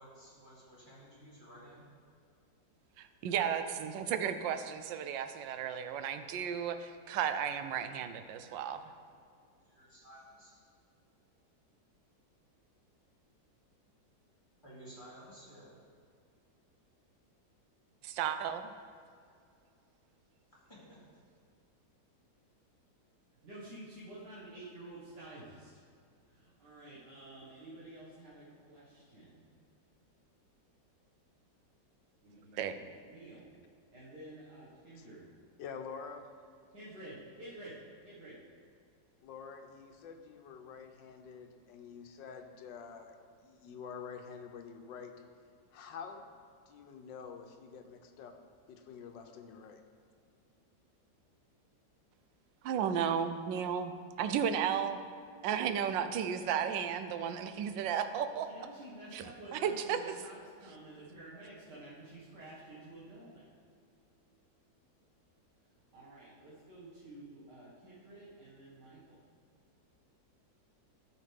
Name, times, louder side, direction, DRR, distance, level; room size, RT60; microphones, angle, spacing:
voice 1, 0.0-1.9 9.6-10.6 14.6-15.7 20.7-21.0, right 1 dB, 15° left, -9 dB, 2.6 m, -54 dB
voice 2, 3.0-8.8 18.0-18.7 32.5-32.7 52.6-55.0 55.4-58.5 59.1-60.0, right 8 dB, 85° right, 9 dB, 1.3 m, -34 dB
voice 3, 23.4-25.7 26.3-29.4 32.2-33.5 33.9-35.3 36.7-38.4 58.4-64.1 65.9-69.1, right 1 dB, 65° right, -10 dB, 2.3 m, -51 dB
voice 4, 35.6-36.3 39.2-43.2 43.4-45.1 45.7-46.3 46.7-48.3 48.7-49.8, left 6 dB, 85° left, 5 dB, 1.5 m, -47 dB
13.0 x 6.5 x 3.4 m, 2.4 s
omnidirectional pair, 2.0 m